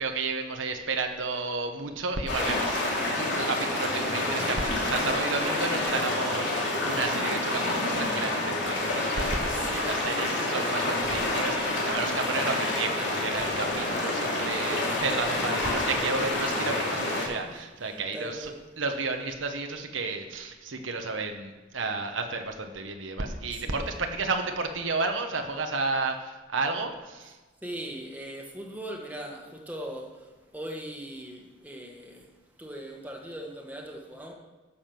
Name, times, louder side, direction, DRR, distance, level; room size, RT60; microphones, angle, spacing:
voice 1, 0.0-18.5 18.8-27.4, right 3 dB, 80° right, 5 dB, 1.1 m, -32 dB
sound 1, 2.3-17.3, left 2 dB, 70° left, 2.7 m, -28 dB
voice 2, 4.4-5.0 9.5-10.4 15.2-15.6 17.0-17.2 17.4-17.5 17.8-18.6 23.5-23.8 27.6-32.3 32.6-34.3, right 1 dB, 10° right, 0 dB, 1.4 m, -40 dB
9.8 x 7.3 x 6.0 m, 1.3 s
head